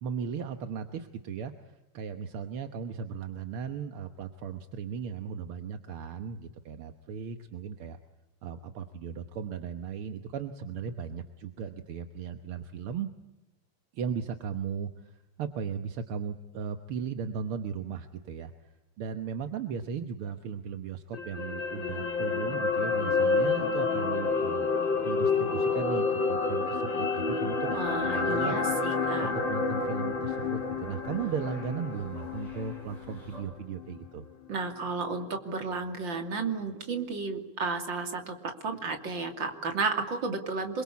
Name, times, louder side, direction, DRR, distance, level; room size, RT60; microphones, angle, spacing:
voice 1, 0.0-8.0 8.4-13.1 13.9-24.6 25.0-28.6 29.2-34.2, right 7 dB, 80° right, 8 dB, 2.1 m, -37 dB
sound 1, 21.1-33.4 33.8-33.9, left 4 dB, 60° left, 2.6 m, -29 dB
sound 2, 27.5-33.4, equal, 15° right, 7.0 m, -50 dB
voice 2, 27.7-29.3 34.5-40.8, right 4 dB, 60° right, 5 dB, 3.5 m, -33 dB
27.5 x 22.5 x 8.5 m, 1.0 s
omnidirectional pair, 2.4 m